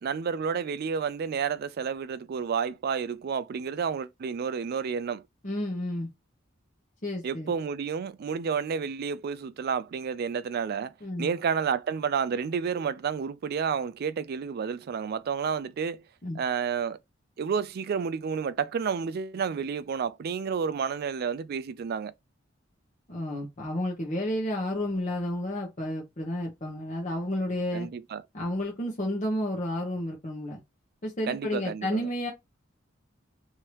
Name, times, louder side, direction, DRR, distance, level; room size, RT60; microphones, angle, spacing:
voice 1, 0.0-5.2 7.2-16.0 16.3-17.0 17.4-22.1 27.7-28.2 31.2-32.1, right 6 dB, 50° right, 0.3 m, -30 dB
voice 2, 5.4-6.1 7.0-7.5 11.0-11.3 16.2-16.4 23.1-27.9 28.3-30.6 31.0-32.3, left 1 dB, 40° left, 1.0 m, -31 dB
3.2 x 2.7 x 3.0 m
head